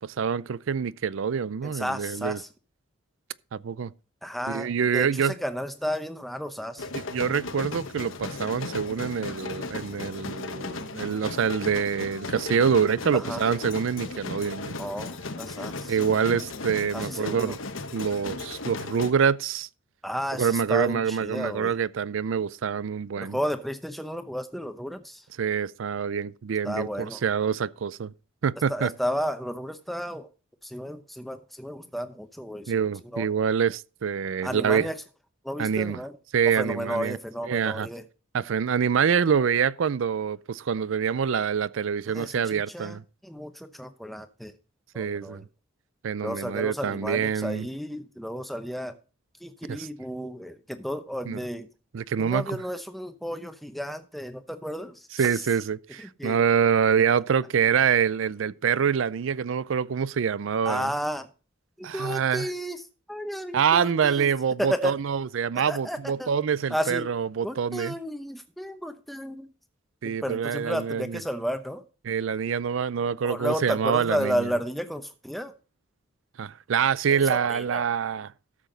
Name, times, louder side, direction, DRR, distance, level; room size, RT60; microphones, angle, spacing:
voice 1, 0.0-2.4 3.5-3.9 4.5-5.4 6.9-14.8 15.9-17.6 17.9-19.7 20.4-23.4 25.4-28.1 28.4-28.9 32.7-34.9 35.6-36.0 36.3-37.2 37.5-37.9 38.3-43.0 44.9-45.5 46.0-47.7 49.7-49.9 51.2-51.4 51.9-52.6 55.1-60.9 61.8-62.5 63.5-68.0 70.0-71.2 72.1-74.5 76.4-78.3, right 7 dB, 75° right, 0.4 m, -26 dB
voice 2, 1.6-2.5 4.2-6.9 13.1-13.4 14.8-15.9 16.9-17.6 20.0-21.7 23.2-25.2 26.6-27.2 28.7-30.3 30.6-32.7 33.1-33.3 34.4-35.0 35.4-36.2 36.6-38.0 42.1-43.0 43.2-44.5 44.9-45.4 46.2-48.9 49.4-51.7 52.2-55.1 56.0-56.4 60.6-61.3 61.8-62.8 63.1-64.3 64.6-65.0 65.7-66.3 66.7-67.1 67.4-69.5 70.0-71.8 73.2-75.5 77.1-77.9, equal, ahead, 0.8 m, -32 dB
sound 1, 6.8-19.1, left 3 dB, 80° left, 1.1 m, -36 dB
13.0 x 7.1 x 3.9 m
head